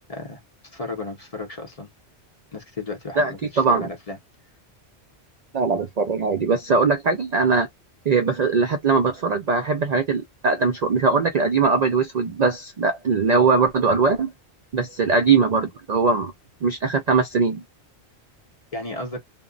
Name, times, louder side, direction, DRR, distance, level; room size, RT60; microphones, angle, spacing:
voice 1, 0.1-1.9 2.5-4.2 18.7-19.2, left 2 dB, 40° left, 0.7 m, -34 dB
voice 2, 3.2-3.9 5.5-7.7 8.1-14.3 14.7-16.3 16.6-17.6, right 4 dB, 60° right, 0.4 m, -21 dB
2.0 x 2.0 x 3.7 m
omnidirectional pair, 1.2 m